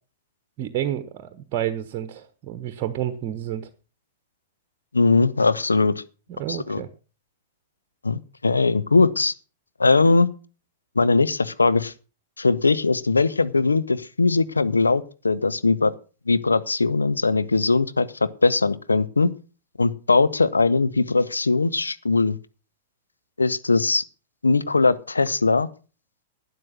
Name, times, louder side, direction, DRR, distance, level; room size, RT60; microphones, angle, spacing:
voice 1, 0.6-3.7 6.3-6.9, right 11 dB, 40° right, 11 dB, 1.1 m, -30 dB
voice 2, 4.9-6.0 6.5-6.8 8.0-9.3 9.8-10.3 10.9-11.9 12.4-15.9 16.3-18.1 18.4-19.3 19.8-22.4 23.4-24.0 24.4-25.7, left 3 dB, 80° left, 14 dB, 0.8 m, -20 dB
12.0 x 9.6 x 6.0 m, 0.36 s
figure-of-eight pair, 100°, 0 cm